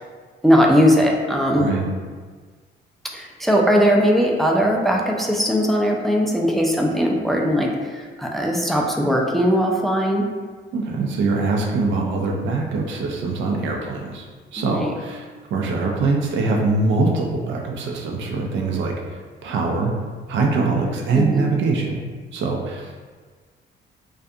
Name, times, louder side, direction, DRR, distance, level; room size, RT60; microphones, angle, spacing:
voice 1, 0.4-1.7 3.1-10.3 14.6-14.9 21.1-21.4, equal, ahead, 0 dB, 0.3 m, -19 dB
voice 2, 1.5-1.9 10.7-14.3 14.5-19.9 20.3-22.0 22.3-23.0, right 3 dB, 70° right, 0 dB, 0.5 m, -23 dB
2.4 x 2.3 x 2.7 m, 1.5 s
cardioid pair, 90°, 20 cm